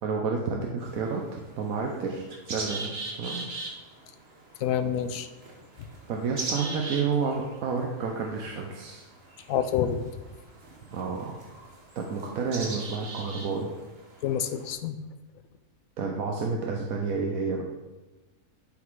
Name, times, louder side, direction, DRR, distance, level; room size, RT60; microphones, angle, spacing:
voice 1, 0.0-2.9 3.2-3.4 6.1-9.0 10.9-11.4 12.0-13.7 16.0-17.6, right 5 dB, 75° right, 0 dB, 1.2 m, -30 dB
sound 1, 0.8-14.7, right 3 dB, 45° right, 1.3 m, -41 dB
voice 2, 4.6-5.3 9.5-10.0 14.2-15.0, left 9 dB, 75° left, 10 dB, 1.0 m, -27 dB
10.5 x 3.9 x 4.7 m, 1.2 s
omnidirectional pair, 1.5 m